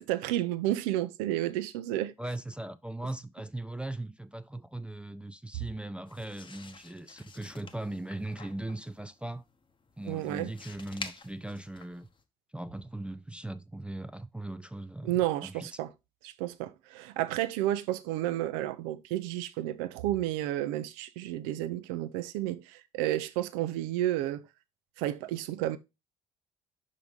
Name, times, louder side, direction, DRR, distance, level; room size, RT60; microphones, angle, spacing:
voice 1, 0.0-2.1 10.1-10.5 15.0-15.9 16.2-24.4 25.0-25.8, right 14 dB, 65° right, 0.6 m, -31 dB
voice 2, 2.2-9.4 10.0-12.1 12.5-15.1 15.4-15.7, right 1 dB, 5° right, 0.4 m, -39 dB
sound 1, 6.1-12.2, left 4 dB, 25° left, 0.9 m, -48 dB
5.7 x 3.8 x 5.0 m
figure-of-eight pair, 50°, 19 cm